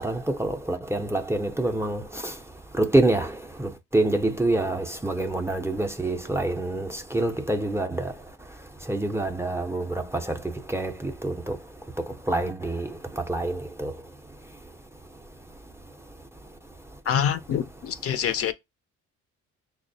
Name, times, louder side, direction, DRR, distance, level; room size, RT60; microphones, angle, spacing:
voice 1, 0.0-2.3 2.8-8.1 8.9-10.3 10.7-11.6 12.3-12.9 13.2-13.9, right 2 dB, 10° right, 0.4 m, -26 dB
voice 2, 17.1-18.5, left 9 dB, 50° left, 0.4 m, -26 dB
5.8 x 2.0 x 2.6 m
cardioid pair, 90°, 30 cm